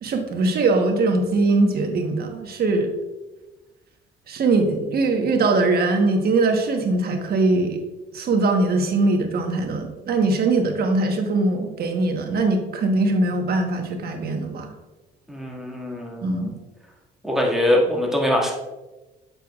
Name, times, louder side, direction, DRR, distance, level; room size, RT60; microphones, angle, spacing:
voice 1, 0.0-2.9 4.3-7.8 8.1-14.7 16.2-16.5, right 3 dB, 55° right, 4 dB, 1.2 m, -21 dB
voice 2, 15.3-16.5 17.2-18.5, left 1 dB, ahead, -2 dB, 2.0 m, -23 dB
8.1 x 6.7 x 2.4 m, 1.1 s
cardioid pair, 90°, 19 cm